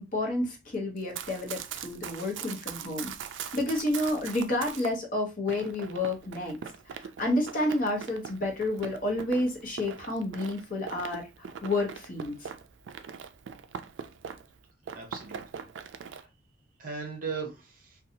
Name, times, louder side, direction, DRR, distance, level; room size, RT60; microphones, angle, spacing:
voice 1, 0.0-3.1 3.5-6.6 7.0-11.3 11.6-12.3, left 1 dB, 40° left, 1 dB, 0.9 m, -30 dB
Run, 1.0-4.9 5.5-14.6 14.9-16.2, right 7 dB, 65° right, 0.3 m, -42 dB
voice 2, 14.9-15.7 16.0-16.3 16.8-18.0, right 5 dB, 45° right, 2 dB, 0.7 m, -38 dB
2.6 x 2.3 x 2.7 m, 0.25 s
head